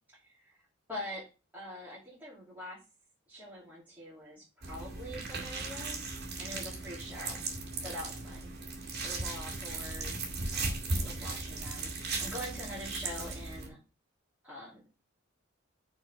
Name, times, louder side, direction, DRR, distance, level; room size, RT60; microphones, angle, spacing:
voice 1, 0.2-0.6 0.9-1.2 1.5-2.8 3.3-6.0 6.4-7.4 7.8-8.5 9.0-13.8 14.4-14.9, left 1 dB, 10° right, -9 dB, 2.8 m, -44 dB
sound 1, 4.6-13.7, right 3 dB, 55° right, 2.2 m, -37 dB
6.4 x 3.9 x 5.5 m, 0.31 s
head